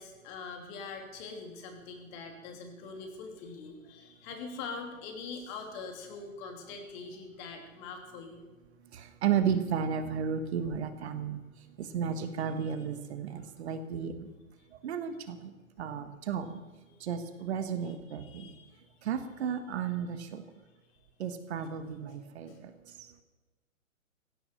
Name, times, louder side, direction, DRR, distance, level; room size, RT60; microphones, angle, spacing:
voice 1, 0.0-8.4 12.6-12.8 13.3-13.6 16.9-17.0 17.8-18.8 22.5-22.6, left 4 dB, 35° left, 4 dB, 3.0 m, -43 dB
voice 2, 8.9-11.4 11.8-14.3 14.8-15.5 15.8-16.6 17.0-18.5 19.0-20.4 21.2-22.7, right 7 dB, 50° right, 10 dB, 1.5 m, -33 dB
16.0 x 9.1 x 7.7 m, 1.2 s
hypercardioid pair, 125°, 41 cm